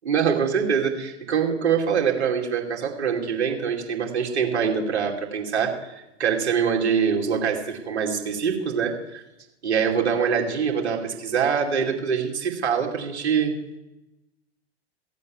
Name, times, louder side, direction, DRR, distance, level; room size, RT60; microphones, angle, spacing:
voice 1, 0.0-9.2 9.6-13.5, right 6 dB, 70° right, 1 dB, 2.8 m, -24 dB
15.5 x 8.3 x 7.3 m, 0.96 s
hypercardioid pair, 105°, 34 cm